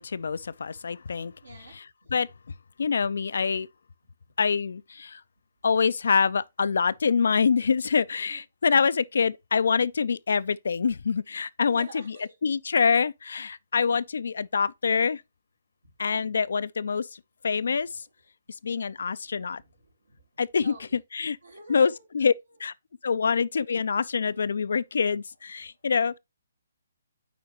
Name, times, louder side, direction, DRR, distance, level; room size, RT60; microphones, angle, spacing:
voice 1, 0.0-1.3 1.7-1.8 2.1-2.3 2.8-3.7 4.4-5.2 5.6-12.2 12.4-15.2 16.0-17.1 17.4-18.0 18.6-19.6 20.4-21.4 21.7-22.3 22.6-22.7 23.0-26.2, left 5 dB, 65° left, 0.3 m, -25 dB
voice 2, 1.4-2.1 8.3-8.4 11.6-12.4 17.8-17.9 19.4-20.3 20.6-21.0 21.4-22.0, right 3 dB, 75° right, 1.9 m, -48 dB
9.2 x 4.3 x 2.9 m
figure-of-eight pair, 135°, 0 cm